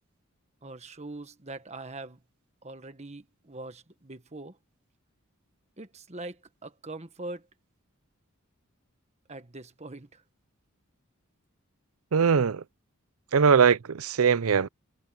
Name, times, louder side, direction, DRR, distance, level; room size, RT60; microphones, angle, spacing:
voice 1, 0.6-2.2 2.6-4.6 5.8-7.5 9.3-10.2, right 2 dB, 30° right, 1.5 m, -42 dB
voice 2, 12.1-12.6 13.3-14.7, right 6 dB, 80° right, 0.5 m, -21 dB
head